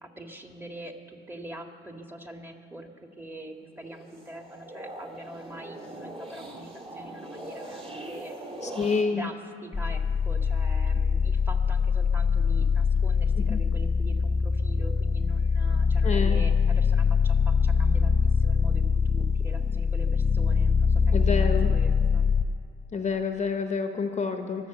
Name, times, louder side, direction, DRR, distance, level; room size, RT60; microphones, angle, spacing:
voice 1, 0.0-8.3 9.1-22.3, right 1 dB, 10° right, 3 dB, 1.8 m, -44 dB
sound 1, 3.8-9.0, right 1 dB, 30° right, 3.0 m, -41 dB
voice 2, 8.6-9.3 13.5-13.6 16.0-16.4 21.1-21.8 22.9-24.7, left 5 dB, 35° left, 6 dB, 1.0 m, -28 dB
sound 2, 9.7-22.4, left 5 dB, 15° left, 0.4 m, -23 dB
23.0 x 7.8 x 7.0 m, 2.3 s
cardioid pair, 90°, 20 cm